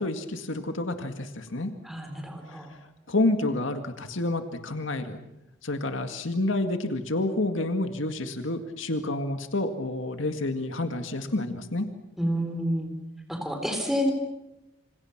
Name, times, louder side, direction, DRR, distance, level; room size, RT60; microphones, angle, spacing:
voice 1, 0.0-1.7 2.5-2.7 3.1-5.2 5.6-11.9, left 2 dB, 80° left, 7 dB, 2.0 m, -29 dB
voice 2, 1.8-2.7 12.2-12.9 13.3-14.1, equal, ahead, 3 dB, 4.0 m, -29 dB
28.0 x 26.0 x 6.0 m, 0.93 s
head